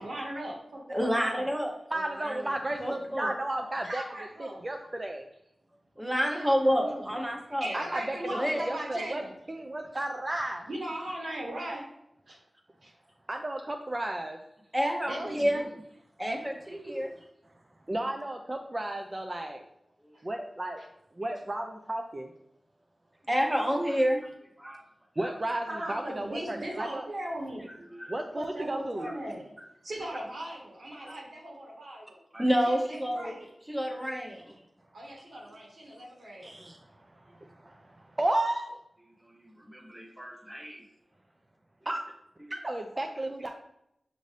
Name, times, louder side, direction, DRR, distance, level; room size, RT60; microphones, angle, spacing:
voice 1, 0.0-1.5 3.8-4.6 6.3-7.1 7.6-9.3 10.7-11.9 12.3-12.4 12.8-12.9 15.1-15.6 25.7-27.7 28.3-29.4 29.8-32.2 32.6-33.5 34.9-36.5, right 1 dB, 85° right, -2 dB, 1.5 m, -38 dB
voice 2, 0.9-2.5 2.8-3.3 6.0-7.7 8.3-8.6 14.7-15.6 16.2-17.1 23.3-24.3 24.6-24.8 25.2-25.3 27.9-28.1 29.0-29.1 32.3-33.3 33.7-34.5 39.3-40.8, equal, 10° right, 1 dB, 0.8 m, -29 dB
voice 3, 1.9-4.0 4.4-5.3 7.7-8.2 8.7-9.2 9.5-10.6 13.3-14.4 16.9-17.0 17.9-19.6 20.2-20.8 21.2-22.3 25.2-27.1 28.1-29.1 34.3-34.4 36.4-36.8 37.3-38.8 41.9-42.0 42.5-43.5, right 1 dB, 30° right, 3 dB, 0.4 m, -33 dB
6.4 x 2.6 x 3.2 m, 0.79 s
wide cardioid pair, 75°, 0 cm